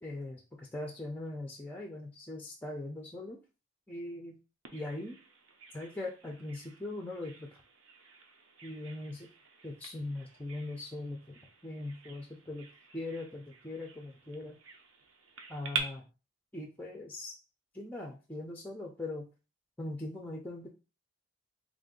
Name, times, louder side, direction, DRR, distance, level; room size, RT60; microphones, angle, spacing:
voice 1, 0.0-3.4 3.9-4.4 4.7-5.2 5.7-7.5 8.6-9.3 9.6-12.7 12.9-14.6 15.5-16.1 16.5-17.4 17.7-19.3 19.8-20.7, left 2 dB, 10° left, 0 dB, 0.4 m, -40 dB
Bird vocalization bird call bird song, 4.6-15.8, right 6 dB, 65° right, 0.7 m, -46 dB
3.5 x 2.5 x 3.7 m, 0.31 s
head